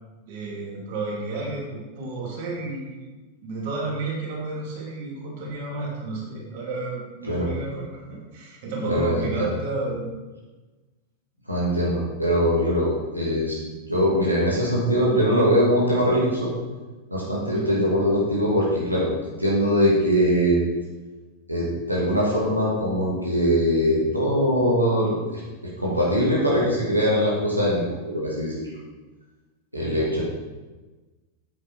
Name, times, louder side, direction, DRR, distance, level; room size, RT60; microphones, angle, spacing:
voice 1, 0.3-3.0 3.4-10.1 17.5-17.7, right 3 dB, 50° right, -2 dB, 2.9 m, -31 dB
voice 2, 8.9-9.3 11.5-13.6 13.9-16.5 17.1-19.1 19.4-20.6 21.5-25.4 25.8-28.8 29.7-30.2, equal, 85° right, -5 dB, 2.5 m, -22 dB
9.5 x 8.6 x 4.6 m, 1.2 s
figure-of-eight pair, 90°, 0 cm